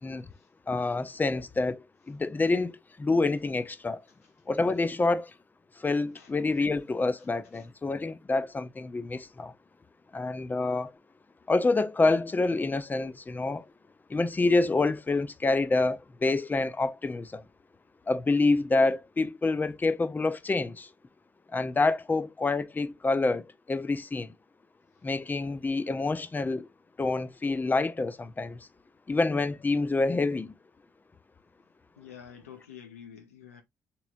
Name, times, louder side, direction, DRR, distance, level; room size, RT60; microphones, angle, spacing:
voice 1, 0.7-4.0 4.5-5.3 5.8-9.5 10.1-10.9 11.5-13.6 14.1-17.4 18.1-20.9 21.5-24.3 25.0-26.7 27.0-28.7 29.1-30.5, left 3 dB, 25° left, 0.5 m, -27 dB
voice 2, 32.0-33.6, left 8 dB, 90° left, 0.7 m, -48 dB
3.8 x 3.1 x 2.5 m
hypercardioid pair, 45°, 7 cm